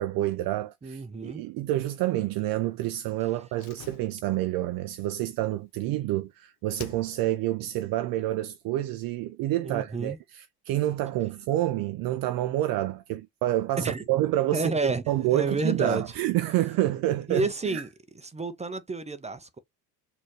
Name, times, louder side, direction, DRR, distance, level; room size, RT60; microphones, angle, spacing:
voice 1, 0.0-14.7 15.1-17.8, right 14 dB, 50° right, 0.5 m, -28 dB
voice 2, 0.8-1.4 9.6-10.2 13.8-14.0 14.5-15.0 15.3-16.0 17.3-17.9 18.2-19.6, right 3 dB, 15° right, 0.6 m, -30 dB
Slam, 3.5-6.3 6.8-7.5 7.8-7.9, left 9 dB, 60° left, 0.9 m, -48 dB
4.2 x 2.7 x 3.1 m
hypercardioid pair, 65°, 44 cm